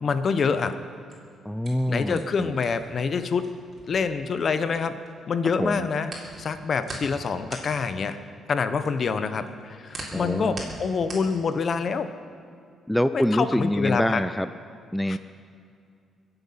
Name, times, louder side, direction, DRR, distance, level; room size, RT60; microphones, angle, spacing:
voice 1, 0.0-0.7 1.9-3.5 3.9-4.9 5.3-6.1 6.4-8.2 8.5-12.1 13.1-14.2 15.1-15.2, left 5 dB, 50° left, 11 dB, 0.8 m, -26 dB
sound 1, 0.9-5.1 5.4-12.0, right 2 dB, 35° right, 3.5 m, -41 dB
voice 2, 1.4-2.5 5.6-5.9 10.1-10.7 12.9-14.5 14.9-15.2, equal, 5° left, 11 dB, 0.4 m, -25 dB
22.0 x 8.0 x 5.7 m, 2.4 s
cardioid pair, 90°, 0 cm